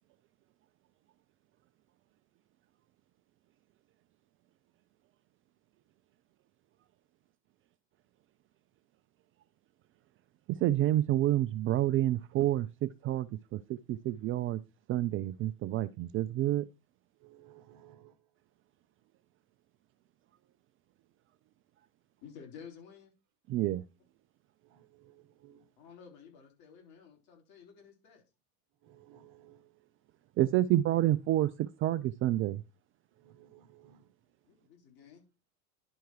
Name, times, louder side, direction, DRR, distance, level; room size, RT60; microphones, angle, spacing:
voice 1, 10.5-13.6 13.9-14.6 14.9-16.7 23.5-23.8 30.4-32.6, right 14 dB, 30° right, 0.4 m, -28 dB
voice 2, 17.2-18.1 24.7-25.7 28.8-29.6 33.2-34.0, right 11 dB, 45° right, 1.3 m, -58 dB
voice 3, 22.2-23.1 25.8-28.2 34.4-35.2, left 7 dB, 55° left, 4.1 m, -52 dB
10.5 x 4.5 x 4.7 m
hypercardioid pair, 80°, 45 cm